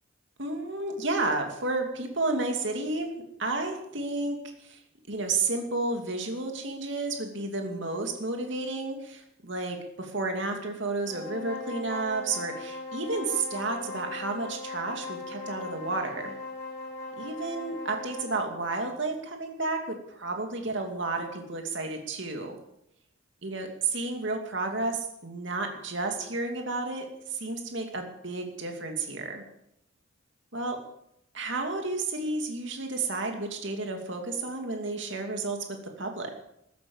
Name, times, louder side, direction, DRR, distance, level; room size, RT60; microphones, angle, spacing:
voice 1, 0.4-3.1 3.4-4.8 5.1-16.3 17.2-22.5 23.4-29.4 30.5-30.8 31.3-35.6 36.0-36.3, right 3 dB, 60° right, 3 dB, 2.6 m, -31 dB
sound 1, 11.0-18.4, left 2 dB, 15° left, 7.9 m, -39 dB
14.0 x 12.0 x 7.3 m, 0.78 s
head